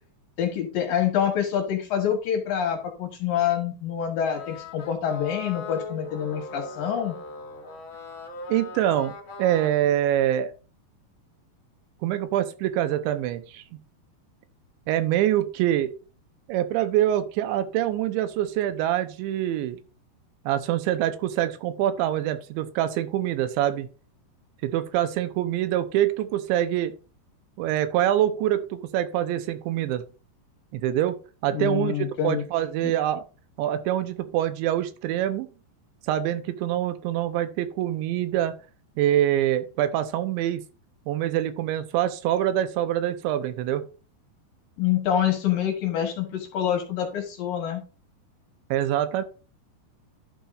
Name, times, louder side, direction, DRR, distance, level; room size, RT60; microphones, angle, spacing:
voice 1, 0.4-7.2 31.5-32.4 32.8-32.9 44.8-47.8, left 9 dB, 65° left, 4 dB, 2.5 m, -26 dB
sound 1, 4.3-9.7, left 3 dB, 85° left, 1.1 m, -39 dB
voice 2, 8.5-10.5 12.0-13.6 14.9-15.9 16.5-19.8 20.5-23.9 24.6-26.9 27.6-30.0 30.7-33.2 33.6-35.5 36.1-38.5 39.0-40.6 41.1-43.8 48.7-49.2, right 12 dB, 85° right, 11 dB, 3.2 m, -25 dB
11.5 x 7.2 x 2.6 m, 0.33 s
omnidirectional pair, 5.2 m